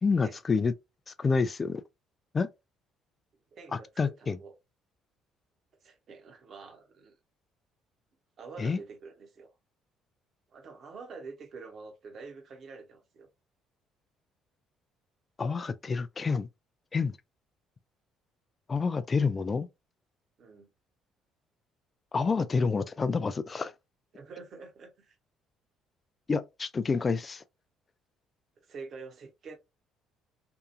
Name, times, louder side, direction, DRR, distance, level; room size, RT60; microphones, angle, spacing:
voice 1, 0.0-0.7 1.1-1.8 2.3-2.5 3.7-4.4 8.6-8.8 15.4-16.5 16.9-17.2 18.7-19.7 22.1-23.7 26.3-27.4, left 4 dB, 35° left, 0.3 m, -28 dB
voice 2, 3.5-4.5 5.8-7.2 8.4-9.5 10.5-13.3 20.4-20.7 24.1-25.2 28.7-29.6, right 4 dB, 50° right, 0.8 m, -46 dB
2.7 x 2.3 x 2.4 m
figure-of-eight pair, 50°, 0 cm